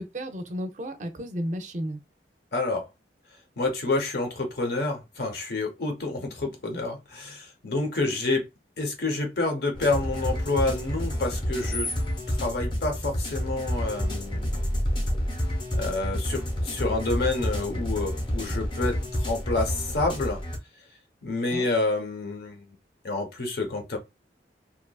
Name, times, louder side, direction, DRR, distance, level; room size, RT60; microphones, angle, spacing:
voice 1, 0.0-2.0 8.0-8.1 21.5-21.7, equal, 45° right, 0.5 m, -33 dB
voice 2, 2.5-2.9 3.6-8.4 8.8-11.9 12.3-14.5 15.7-20.4 21.2-22.7 23.0-24.0, left 2 dB, 60° left, 0.8 m, -28 dB
sound 1, 9.7-20.6, equal, 25° left, 0.8 m, -29 dB
2.8 x 2.4 x 2.2 m
head